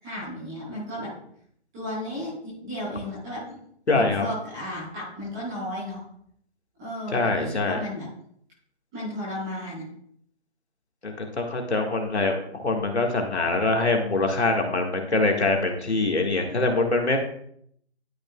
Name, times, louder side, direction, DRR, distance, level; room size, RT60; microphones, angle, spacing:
voice 1, 0.0-1.1 1.7-3.6 3.9-6.0 6.8-8.0 8.9-9.8, left 1 dB, 5° right, -10 dB, 0.9 m, -34 dB
voice 2, 3.9-4.3 7.1-7.8 11.0-17.2, left 3 dB, 80° left, 2 dB, 1.9 m, -24 dB
12.0 x 5.2 x 2.4 m, 0.67 s
figure-of-eight pair, 165°, 34 cm